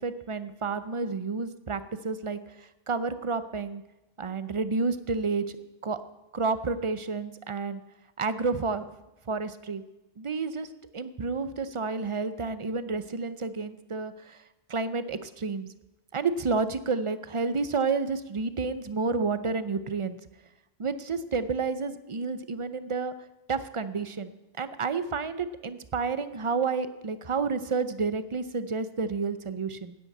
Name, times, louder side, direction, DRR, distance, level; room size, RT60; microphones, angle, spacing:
voice 1, 0.0-3.8 4.2-5.5 5.8-6.0 6.3-7.8 8.2-8.9 9.3-9.8 10.2-14.4 14.7-15.7 16.1-20.2 20.8-23.1 23.5-29.9, right 4 dB, 35° right, 12 dB, 0.6 m, -30 dB
10.0 x 8.2 x 8.8 m, 0.97 s
omnidirectional pair, 1.1 m